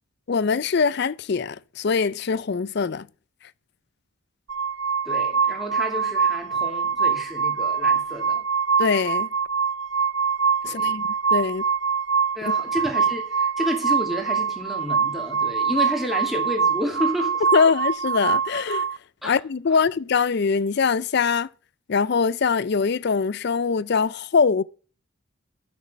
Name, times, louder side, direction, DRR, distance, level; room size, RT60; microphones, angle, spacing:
voice 1, 0.3-3.1 8.8-9.3 10.6-11.0 11.3-11.6 17.5-18.9 19.2-21.5 21.9-24.6, left 5 dB, 50° left, 0.4 m, -22 dB
sound 1, 4.5-19.0, right 6 dB, 60° right, 0.7 m, -24 dB
voice 2, 5.0-8.4 10.6-11.0 12.3-17.4 19.2-19.3 19.7-19.8, equal, ahead, 2.2 m, -30 dB
10.5 x 6.2 x 6.4 m
head